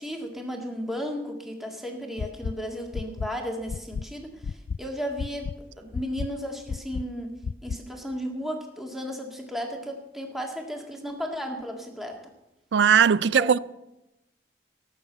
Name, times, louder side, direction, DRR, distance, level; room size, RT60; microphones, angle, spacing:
voice 1, 0.0-4.5 4.8-5.5 5.8-7.3 7.6-12.2 13.2-13.6, equal, ahead, 1.8 m, -34 dB
sound 1, 2.2-2.5 2.9-3.3 3.7-4.0 4.4-4.8 5.2-5.5 5.9-6.3 6.7-7.0 7.4-7.8, left 5 dB, 70° left, 0.4 m, -31 dB
voice 2, 12.7-13.6, right 7 dB, 80° right, 0.4 m, -19 dB
17.5 x 6.9 x 7.8 m
head